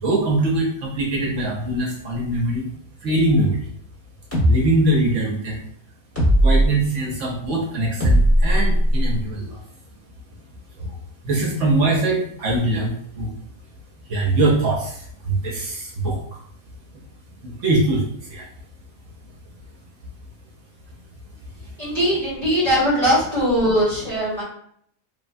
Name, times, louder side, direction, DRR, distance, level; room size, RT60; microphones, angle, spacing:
voice 1, 0.0-2.7 3.0-3.7 4.5-5.6 6.4-9.6 10.8-11.0 11.2-13.3 14.1-16.4 17.4-18.5, right 2 dB, 65° right, -2 dB, 0.9 m, -22 dB
sound 1, 4.3-4.6 6.2-6.7 8.0-9.2, equal, 10° left, 1.0 m, -16 dB
voice 2, 21.8-24.4, equal, 30° left, -8 dB, 1.1 m, -20 dB
3.3 x 2.1 x 2.5 m, 0.66 s
omnidirectional pair, 1.5 m